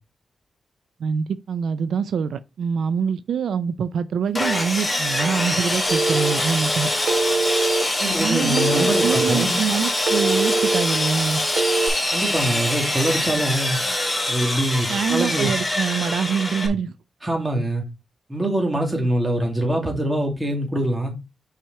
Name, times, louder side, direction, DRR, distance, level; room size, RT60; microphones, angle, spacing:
voice 1, 1.0-6.9 8.2-11.4 14.9-16.9, right 6 dB, 90° right, 0.5 m, -25 dB
Sawing, 4.3-16.7, left 1 dB, 15° left, 1.9 m, -24 dB
Telephone, 5.9-6.6 7.0-7.8 8.5-9.3 9.8-10.8 11.5-11.9, right 3 dB, 65° right, 2.4 m, -22 dB
voice 2, 8.0-9.6 12.1-13.8 14.3-15.5 17.2-17.8 18.3-21.1, right 1 dB, 15° right, 2.2 m, -24 dB
5.7 x 4.9 x 4.3 m
wide cardioid pair, 135°, 0 cm